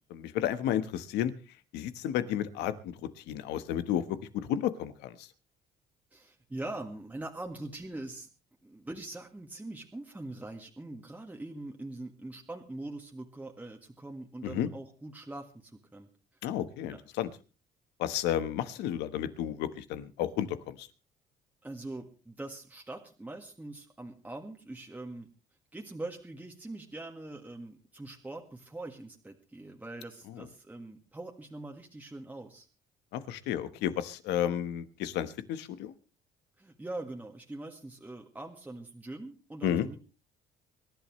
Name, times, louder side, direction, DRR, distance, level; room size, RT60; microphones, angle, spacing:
voice 1, 0.1-1.3 1.7-4.0 4.5-5.3 14.4-14.7 16.4-17.3 18.0-20.9 30.4-30.5 33.1-35.9 39.6-39.9, left 11 dB, 85° left, 12 dB, 1.3 m, -32 dB
voice 2, 6.1-8.3 8.6-16.1 16.4-16.5 16.9-17.0 21.6-25.3 25.7-32.7 36.6-40.0, right 2 dB, 10° right, 1 dB, 1.7 m, -43 dB
25.0 x 11.5 x 3.2 m, 0.34 s
cardioid pair, 110°, 17 cm